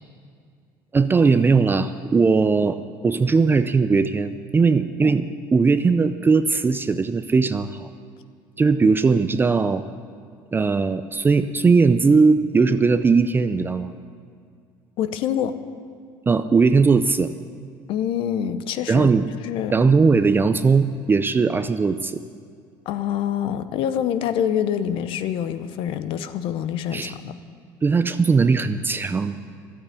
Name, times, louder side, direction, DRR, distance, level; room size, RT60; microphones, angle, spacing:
voice 1, 0.9-2.8 3.0-7.9 8.6-9.8 10.5-13.9 16.3-17.3 18.9-19.3 19.7-22.2 26.9-27.1 27.8-29.3, right 4 dB, 20° right, 10 dB, 0.5 m, -19 dB
voice 2, 15.0-15.6 17.9-19.1 19.4-19.7 22.9-27.3, left 9 dB, 65° left, 12 dB, 0.8 m, -25 dB
13.0 x 8.7 x 9.5 m, 2.2 s
supercardioid pair, 100°, 10 cm